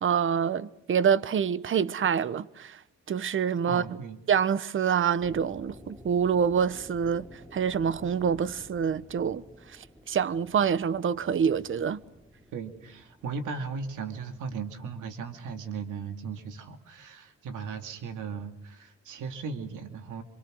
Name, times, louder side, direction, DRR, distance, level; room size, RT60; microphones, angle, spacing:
voice 1, 0.0-2.8 3.1-3.8 4.3-9.4 9.7-12.0, right 7 dB, 45° right, 1.0 m, -26 dB
voice 2, 3.6-4.2 12.5-20.2, right 5 dB, 85° right, 2.5 m, -37 dB
sound 1, 5.2-15.1, equal, 5° right, 7.8 m, -51 dB
27.0 x 26.5 x 6.3 m
cardioid pair, 90°, 30 cm